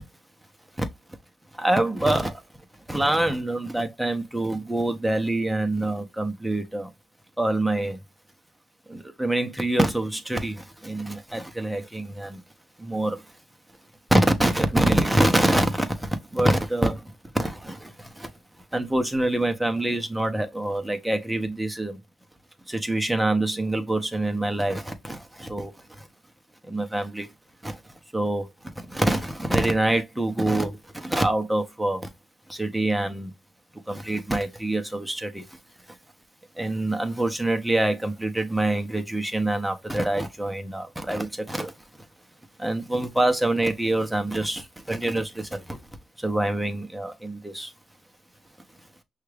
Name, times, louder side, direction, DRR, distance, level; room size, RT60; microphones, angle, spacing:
voice 1, 1.5-2.4 2.9-6.9 7.4-8.0 8.9-12.4 12.8-13.2 14.1-18.3 18.7-22.0 22.7-26.1 26.6-27.3 27.6-32.1 32.5-33.3 33.9-35.6 36.6-41.7 42.6-45.8 46.2-47.7, right 1 dB, 5° right, 0.9 m, -25 dB
5.6 x 2.4 x 3.3 m
cardioid pair, 90°, 0 cm